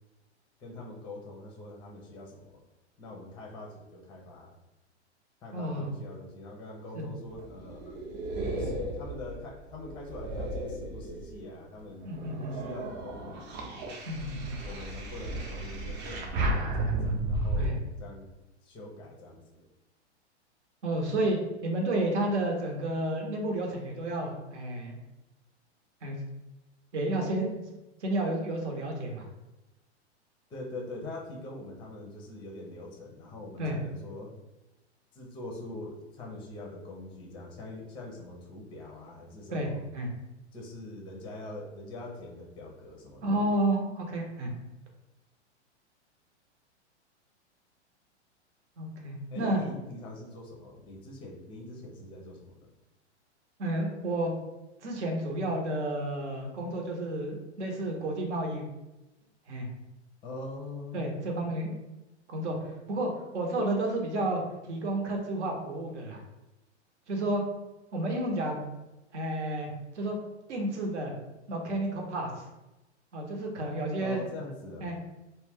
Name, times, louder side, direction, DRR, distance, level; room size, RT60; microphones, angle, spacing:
voice 1, 0.6-2.6 3.0-4.5 5.4-8.2 8.6-12.0 12.5-13.6 14.6-18.3 18.6-19.6 30.5-34.3 35.1-39.8 40.5-43.5 49.3-52.7 60.2-61.0 74.0-74.9, left 2 dB, 15° left, 0 dB, 0.5 m, -43 dB
voice 2, 5.5-5.9 6.9-7.1 12.0-12.5 14.1-14.6 17.5-17.8 20.8-25.0 26.0-26.2 26.9-27.5 28.0-29.3 33.6-33.8 39.5-40.1 43.2-44.5 48.8-49.6 53.6-54.3 54.8-58.6 59.5-59.7 60.9-61.7 62.3-64.4 64.7-66.2 67.1-67.4 67.9-68.6 69.1-70.2 70.5-71.1 71.5-72.4 73.1-74.2 74.8-75.0, right 1 dB, 75° right, 1 dB, 0.9 m, -31 dB
sound 1, 7.2-11.5 12.0-17.7, right 2 dB, 40° right, 0.7 m, -34 dB
2.4 x 2.2 x 3.4 m, 1.0 s
hypercardioid pair, 110°, 35 cm